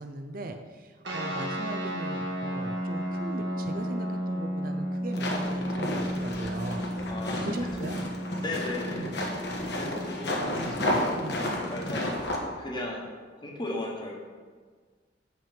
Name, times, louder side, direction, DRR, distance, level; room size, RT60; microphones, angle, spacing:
voice 1, 0.0-7.1 7.4-8.0 8.9-9.1 10.4-11.4, right 2 dB, 50° right, 6 dB, 0.6 m, -39 dB
sound 1, 1.0-12.0, equal, 70° right, 1.6 m, -34 dB
sound 2, 5.1-12.4, left 1 dB, 65° left, 1.3 m, -32 dB
voice 2, 7.1-7.5 8.4-9.1 9.7-11.1 11.6-14.1, left 1 dB, 25° left, -1 dB, 1.3 m, -36 dB
7.5 x 5.7 x 5.2 m, 1.5 s
head